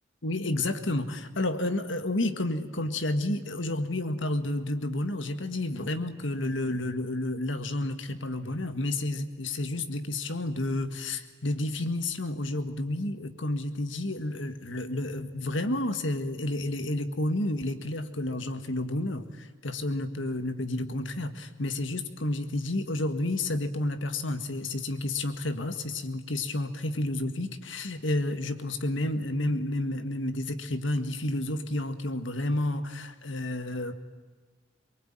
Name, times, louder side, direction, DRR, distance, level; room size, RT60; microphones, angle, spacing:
voice 1, 0.2-33.9, left 1 dB, 75° left, 9 dB, 1.8 m, -30 dB
24.0 x 23.0 x 9.1 m, 1.4 s
head